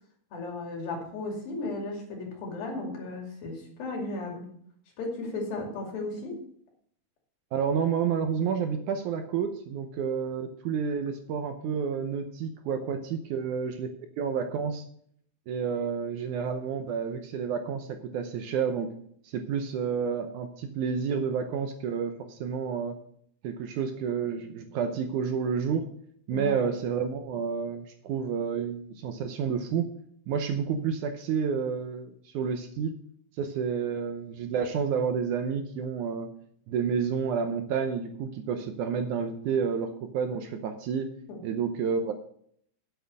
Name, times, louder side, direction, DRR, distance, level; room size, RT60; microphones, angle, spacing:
voice 1, 0.3-4.5 5.0-6.4 26.3-26.6 41.3-41.4, left 2 dB, 80° left, 0 dB, 4.4 m, -35 dB
voice 2, 7.5-13.9 14.2-14.8 15.5-18.9 19.3-23.0 23.4-25.8 26.3-29.9 30.3-33.0 33.4-36.3 36.7-41.1 41.4-42.1, right 6 dB, 75° right, 7 dB, 2.0 m, -30 dB
8.2 x 7.9 x 6.6 m, 0.65 s
omnidirectional pair, 4.1 m